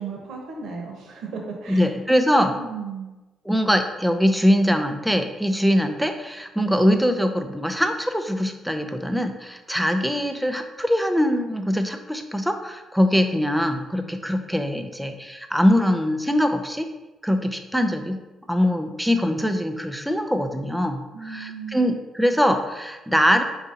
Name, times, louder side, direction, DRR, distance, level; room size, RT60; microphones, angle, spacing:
voice 1, 0.0-1.9 2.5-3.1 21.1-21.9, right 5 dB, 75° right, 1 dB, 0.9 m, -35 dB
voice 2, 1.7-2.6 3.5-16.9 17.2-18.2 18.5-23.4, equal, ahead, 6 dB, 0.4 m, -22 dB
4.8 x 2.7 x 3.8 m, 1.1 s
cardioid pair, 90°, 0 cm